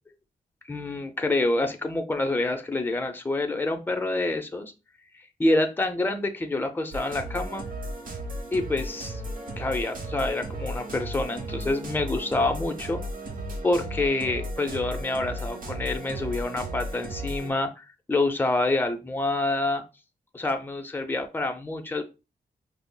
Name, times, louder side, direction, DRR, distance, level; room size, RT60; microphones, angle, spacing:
voice 1, 0.7-4.7 5.4-7.7 8.5-9.2 9.6-13.0 13.6-19.8 20.3-22.0, left 2 dB, 15° left, 5 dB, 0.5 m, -27 dB
sound 1, 6.9-17.5, right 1 dB, 65° right, 0.9 m, -35 dB
5.1 x 2.0 x 2.2 m, 0.28 s
cardioid pair, 75°, 15 cm